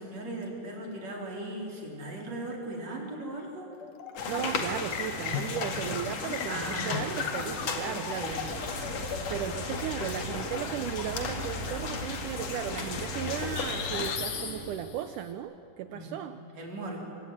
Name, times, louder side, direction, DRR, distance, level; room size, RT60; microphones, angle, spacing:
voice 1, 0.0-3.7 4.5-4.6 6.5-7.0 8.1-8.4 15.9-16.2 16.5-17.0, right 2 dB, 50° right, -1 dB, 5.5 m, -38 dB
sound 1, 3.7-4.6 4.9-11.5 13.6-15.1, left 6 dB, 75° left, 3.3 m, -38 dB
sound 2, 4.2-14.2, left 4 dB, 55° left, 3.1 m, -35 dB
voice 2, 4.3-8.3 9.3-16.4, right 10 dB, 75° right, 10 dB, 2.2 m, -36 dB
sound 3, 8.3-14.8, right 1 dB, 30° right, 1.4 m, -41 dB
25.0 x 23.5 x 9.5 m, 2.7 s
omnidirectional pair, 3.8 m